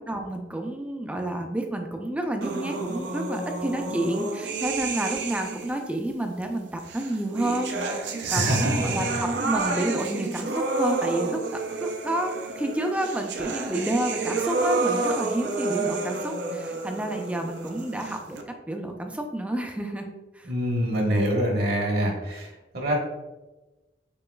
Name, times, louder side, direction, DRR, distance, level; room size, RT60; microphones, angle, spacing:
voice 1, 0.0-18.4 18.7-20.1 20.3-20.5, right 1 dB, 10° right, 3 dB, 0.4 m, -30 dB
sound 1, 2.4-5.9 6.9-18.4, right 3 dB, 80° right, 0.6 m, -30 dB
voice 2, 8.2-9.0 20.4-22.9, equal, 65° right, -1 dB, 1.4 m, -25 dB
6.8 x 3.0 x 2.3 m, 1.1 s
head